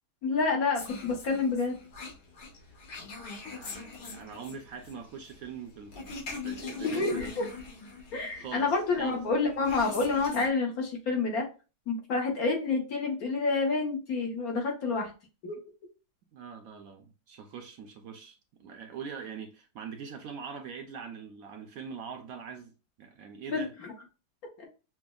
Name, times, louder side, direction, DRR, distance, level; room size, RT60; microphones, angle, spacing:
voice 1, 0.2-1.8 6.8-7.4 8.1-11.4 11.9-15.1 15.4-15.6 23.5-23.6 24.6-24.7, left 4 dB, 65° left, 1.5 m, -28 dB
sound 1, 0.7-10.5, left 4 dB, 80° left, 1.8 m, -42 dB
voice 2, 3.4-7.3 8.3-8.7 9.0-9.2 16.3-22.7 23.0-23.7, right 6 dB, 65° right, 0.9 m, -43 dB
5.8 x 2.1 x 2.3 m
omnidirectional pair, 1.8 m